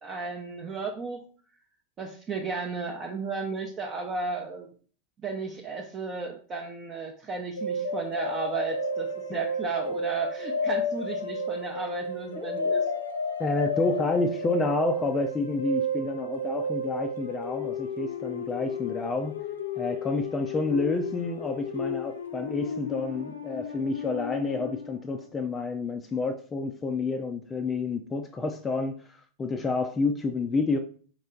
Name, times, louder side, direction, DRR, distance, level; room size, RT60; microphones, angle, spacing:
voice 1, 0.0-1.2 2.0-4.7 5.2-12.8, right 4 dB, 25° right, 0.7 m, -34 dB
sound 1, 7.6-25.0, left 2 dB, 70° left, 0.5 m, -32 dB
voice 2, 13.4-19.4 19.8-30.8, left 3 dB, 20° left, 0.4 m, -29 dB
4.5 x 3.1 x 3.8 m
figure-of-eight pair, 90°, 0 cm